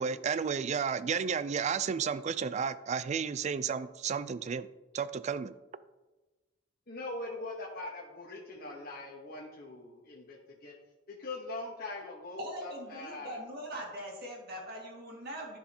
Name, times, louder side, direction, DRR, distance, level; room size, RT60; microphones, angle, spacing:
voice 1, 0.0-4.7 4.9-5.5, right 6 dB, 40° right, 15 dB, 0.3 m, -32 dB
voice 2, 6.9-10.7 11.1-13.4, left 2 dB, 50° left, -2 dB, 1.1 m, -42 dB
voice 3, 12.4-15.6, right 1 dB, 55° right, 0 dB, 2.0 m, -41 dB
13.5 x 4.8 x 2.8 m, 1.2 s
head